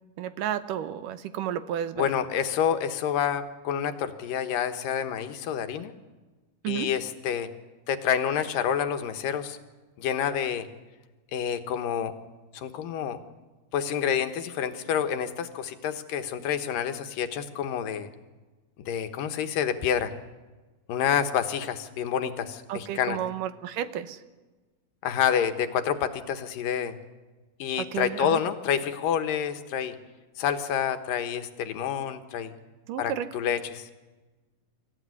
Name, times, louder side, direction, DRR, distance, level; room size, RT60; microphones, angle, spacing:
voice 1, 0.2-2.1 6.6-6.9 22.7-24.2 27.8-28.4 32.9-33.3, right 10 dB, 80° right, 11 dB, 2.6 m, -32 dB
voice 2, 2.0-5.9 6.7-7.5 7.9-9.6 10.0-10.7 11.3-12.1 12.5-13.2 13.7-18.1 18.9-20.1 20.9-23.2 25.0-27.0 27.6-30.0 30.4-32.5 33.0-33.9, left 8 dB, 85° left, 8 dB, 3.0 m, -28 dB
26.0 x 15.5 x 9.7 m, 1.2 s
omnidirectional pair, 3.8 m